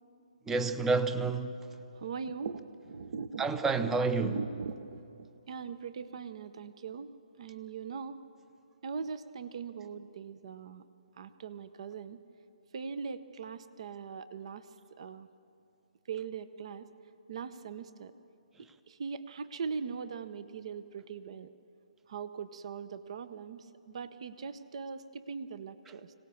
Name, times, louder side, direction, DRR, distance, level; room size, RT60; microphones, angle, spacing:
voice 1, 0.5-1.6 3.4-4.4, right 4 dB, 10° right, 0.6 m, -29 dB
voice 2, 1.9-3.5 3.8-3.9 4.2-7.1 7.4-8.2 8.8-10.8 11.2-12.2 12.7-14.7 15.0-15.3 16.1-16.9 17.3-18.1 18.6-21.5 22.1-26.1, right 5 dB, 50° right, 0.8 m, -40 dB
25.0 x 17.5 x 7.1 m
hypercardioid pair, 155°, 4 cm